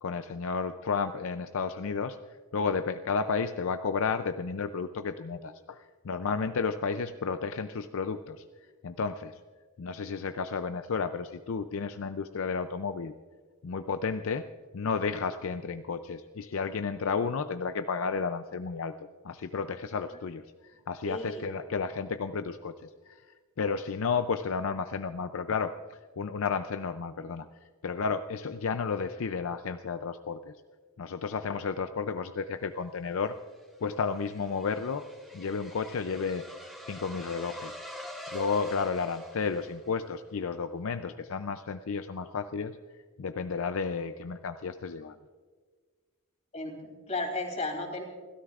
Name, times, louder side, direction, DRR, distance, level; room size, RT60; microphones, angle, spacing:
voice 1, 0.0-8.4 8.8-9.4 9.8-13.1 13.6-14.5 14.7-19.0 19.2-23.2 23.6-27.5 27.8-30.5 31.0-33.4 33.8-35.1 35.3-36.5 36.9-37.8 38.3-42.8 43.2-45.2, left 5 dB, 65° left, 9 dB, 0.5 m, -32 dB
voice 2, 21.0-21.5 46.5-48.0, left 2 dB, 30° left, 2 dB, 3.1 m, -34 dB
sound 1, 33.1-40.2, left 1 dB, ahead, 2.3 m, -45 dB
28.5 x 13.0 x 2.4 m, 1.5 s
head